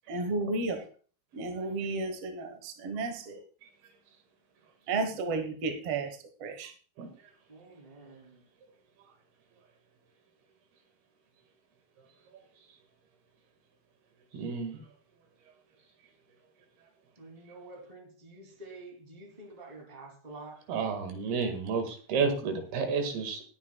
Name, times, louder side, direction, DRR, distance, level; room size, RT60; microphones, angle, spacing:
voice 1, 0.1-0.8 1.3-3.4 4.9-6.7, right 3 dB, 60° right, 1.7 m, -33 dB
voice 2, 7.5-8.4 17.2-20.6, right 2 dB, 10° right, 2.3 m, -48 dB
voice 3, 14.3-14.8 20.7-23.4, right 5 dB, 80° right, 3.8 m, -31 dB
20.5 x 8.7 x 2.3 m
omnidirectional pair, 4.4 m